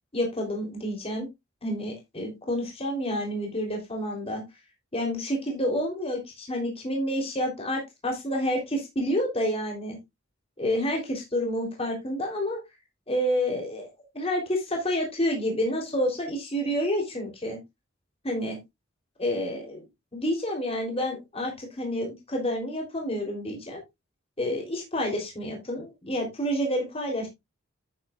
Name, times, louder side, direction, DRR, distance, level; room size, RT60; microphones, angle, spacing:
voice 1, 0.1-1.3 1.6-4.4 4.9-10.0 10.6-12.6 13.1-17.6 18.3-18.6 19.2-19.8 20.1-23.8 24.4-27.3, equal, 30° left, 1 dB, 3.5 m, -29 dB
9.9 x 9.0 x 2.4 m, 0.20 s
head